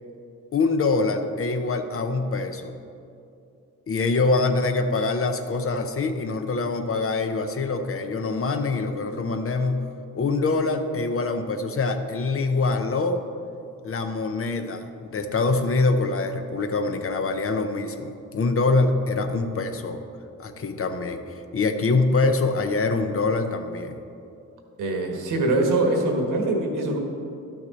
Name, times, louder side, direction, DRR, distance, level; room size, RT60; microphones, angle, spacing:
voice 1, 0.5-2.7 3.9-9.9 10.1-13.2 13.8-20.0 20.4-21.2 21.5-24.0, left 3 dB, 45° left, 7 dB, 0.7 m, -24 dB
voice 2, 24.8-27.0, right 2 dB, 80° right, 2 dB, 1.5 m, -23 dB
11.5 x 6.0 x 4.1 m, 2.6 s
cardioid pair, 80°, 31 cm